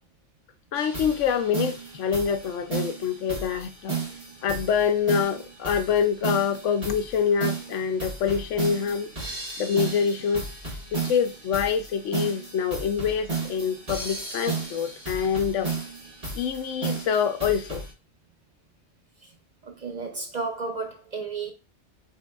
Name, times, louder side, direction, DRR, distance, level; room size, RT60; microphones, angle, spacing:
voice 1, 0.7-4.0 4.4-9.1 9.6-10.5 10.9-15.7 16.3-17.8, left 7 dB, 90° left, 1.0 m, -26 dB
sound 1, 0.7-17.9, right 4 dB, 30° right, 1.8 m, -33 dB
voice 2, 19.8-21.5, right 4 dB, 50° right, 0.6 m, -32 dB
4.2 x 3.7 x 2.4 m
omnidirectional pair, 1.2 m